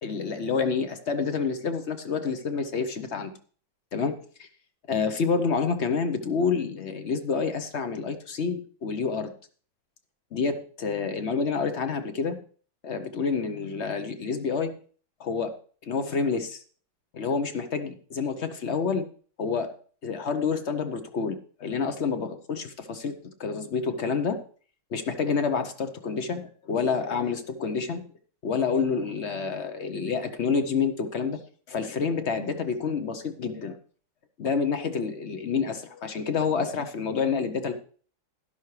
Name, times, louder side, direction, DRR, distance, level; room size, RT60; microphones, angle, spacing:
voice 1, 0.0-3.3 3.9-4.5 4.9-9.3 10.3-12.4 12.8-14.7 15.2-15.6 15.8-16.6 17.1-19.0 19.4-19.7 20.0-24.4 24.9-28.0 28.4-31.4 31.7-33.8 34.4-37.7, left 5 dB, 55° left, 9 dB, 0.8 m, -28 dB
12.0 x 11.5 x 3.2 m, 0.43 s
omnidirectional pair, 2.1 m